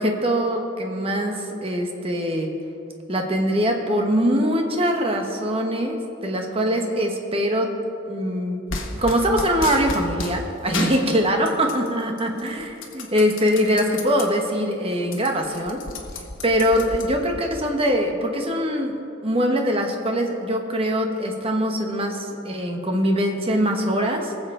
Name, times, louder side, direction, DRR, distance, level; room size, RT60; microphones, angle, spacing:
voice 1, 0.0-2.5 3.1-7.7 8.1-15.9 16.4-24.5, equal, 30° right, 3 dB, 1.1 m, -23 dB
sound 1, 8.7-10.4 10.7-11.9 12.2-14.3 14.7-14.8 15.0-17.4, left 3 dB, 65° left, 1.4 m, -32 dB
20.5 x 7.3 x 3.7 m, 2.8 s
head